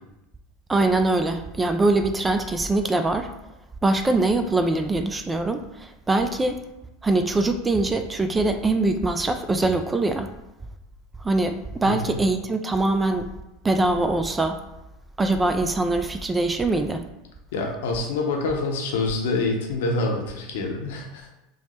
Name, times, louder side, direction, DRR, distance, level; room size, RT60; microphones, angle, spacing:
voice 1, 0.7-3.3 3.8-6.6 7.0-10.3 11.2-13.3 13.6-14.6 15.2-17.1, right 2 dB, 15° right, 7 dB, 0.3 m, -23 dB
voice 2, 11.8-12.2 17.5-21.3, left 3 dB, 70° left, 1 dB, 0.7 m, -26 dB
3.1 x 2.1 x 4.2 m, 0.95 s
hypercardioid pair, 85°, 0 cm